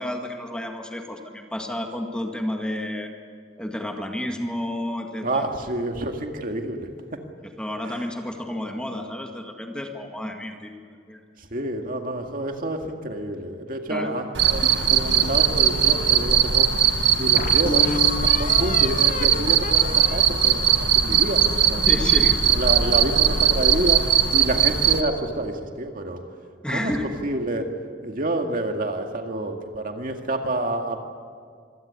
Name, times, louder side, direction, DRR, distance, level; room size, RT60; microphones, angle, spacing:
voice 1, 0.0-3.1 3.6-5.5 7.6-11.2 13.9-14.1 21.9-22.4 26.6-27.0, left 1 dB, 5° left, 3 dB, 1.9 m, -31 dB
voice 2, 5.2-6.9 7.8-8.1 11.4-14.6 14.9-16.9 17.2-17.9 18.2-21.9 22.5-24.0 24.3-26.2 26.7-27.0 27.2-27.7 28.0-31.0, right 1 dB, 50° right, 4 dB, 2.1 m, -28 dB
Cricket, 14.3-25.0, right 9 dB, 85° right, 1.5 m, -19 dB
sound 1, 14.6-16.2 16.7-16.8 17.4-21.5, left 4 dB, 45° left, 0.9 m, -32 dB
25.5 x 17.0 x 8.5 m, 2.1 s
head